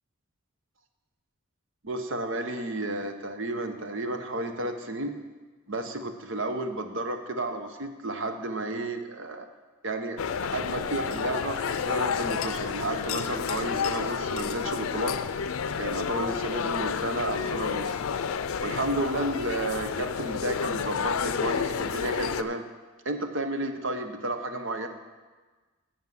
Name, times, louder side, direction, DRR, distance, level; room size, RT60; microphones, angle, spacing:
voice 1, 1.8-5.2 5.7-9.5 9.8-10.2 10.5-15.2 15.8-18.0 18.6-22.6 23.0-24.9, right 2 dB, 65° right, 7 dB, 0.9 m, -32 dB
sound 1, 10.2-22.4, left 6 dB, 90° left, 0.5 m, -30 dB
9.4 x 6.5 x 7.6 m, 1.3 s
head